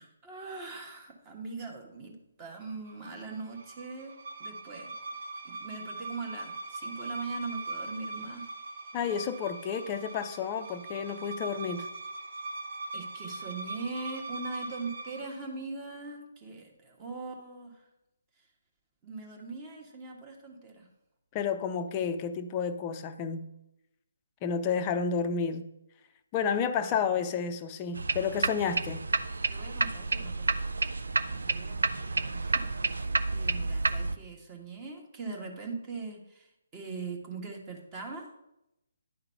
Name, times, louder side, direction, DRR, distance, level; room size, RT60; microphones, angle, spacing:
voice 1, 0.0-2.1 2.4-4.9 5.4-8.4 12.9-17.8 19.0-20.9 26.8-26.9 29.5-30.8 31.3-36.5 36.7-38.3, right 4 dB, 20° right, 1.5 m, -41 dB
sound 1, 2.7-15.4, right 2 dB, 50° right, 1.2 m, -41 dB
voice 2, 8.9-11.9 21.3-23.5 24.4-25.7 26.3-29.1, left 6 dB, 25° left, 0.6 m, -31 dB
sound 2, 27.9-34.2, right 3 dB, 70° right, 0.5 m, -30 dB
10.0 x 3.9 x 5.6 m
figure-of-eight pair, 140°, 0 cm